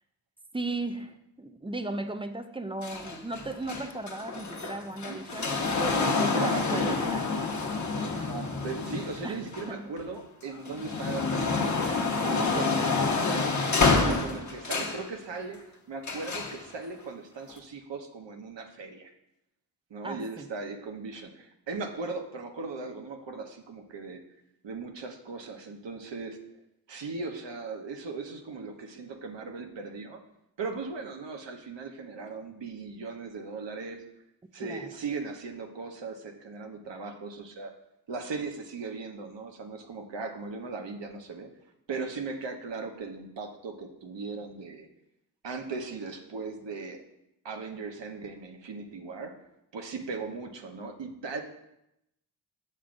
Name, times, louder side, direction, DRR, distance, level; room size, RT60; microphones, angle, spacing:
voice 1, 0.5-7.3 9.2-9.4 9.7-9.9 14.1-14.4 20.0-20.4 34.6-34.9, right 2 dB, 10° right, 8 dB, 0.4 m, -36 dB
sound 1, 2.8-10.0 10.5-15.1 16.0-16.6 17.5-17.6, left 4 dB, 35° left, 0.9 m, -28 dB
voice 2, 5.9-6.9 8.1-12.8 13.2-13.5 14.0-15.6 15.9-19.1 19.9-24.2 24.6-26.4 26.9-30.2 30.6-34.0 34.5-37.7 38.1-41.5 41.9-44.9 45.4-47.0 47.4-49.3 49.7-51.4, right 4 dB, 60° right, 4 dB, 1.0 m, -38 dB
7.8 x 6.0 x 2.6 m, 0.84 s
cardioid pair, 65°, 48 cm